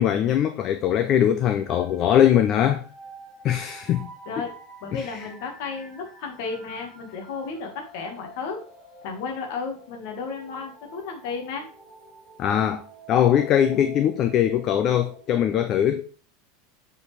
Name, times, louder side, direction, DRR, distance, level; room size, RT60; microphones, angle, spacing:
voice 1, 0.0-2.8 3.4-4.1 4.9-5.1 12.4-12.8 13.1-16.1, left 10 dB, 25° left, 0.4 m, -21 dB
sound 1, 0.5-15.8, right 1 dB, 5° right, 2.4 m, -48 dB
voice 2, 4.8-8.6 9.0-11.7, left 4 dB, 50° left, 1.5 m, -33 dB
7.2 x 4.3 x 3.2 m
supercardioid pair, 180°, 0 cm